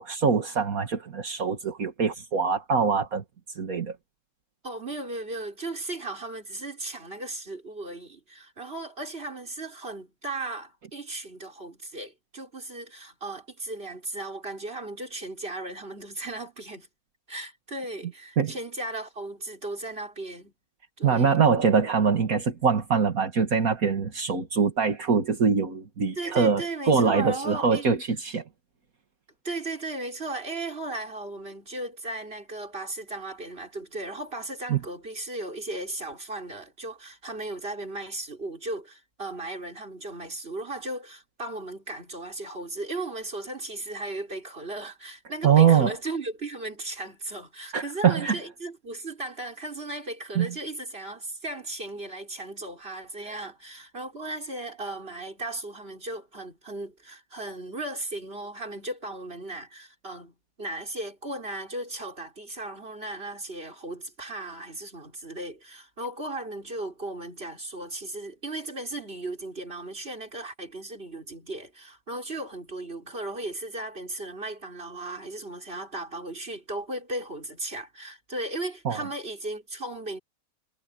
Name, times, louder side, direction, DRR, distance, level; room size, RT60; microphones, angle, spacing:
voice 1, 0.0-3.2 3.6-4.0 18.4-18.5 21.0-28.4 34.7-34.8 45.4-45.9 47.7-48.4 50.4-50.5 53.3-53.4 78.9-79.0, right 6 dB, 70° right, 2.3 m, -23 dB
voice 2, 4.6-16.9 17.3-20.5 21.0-21.4 26.1-27.9 29.4-80.2, right 2 dB, 40° right, 4.9 m, -36 dB
omnidirectional pair, 1.6 m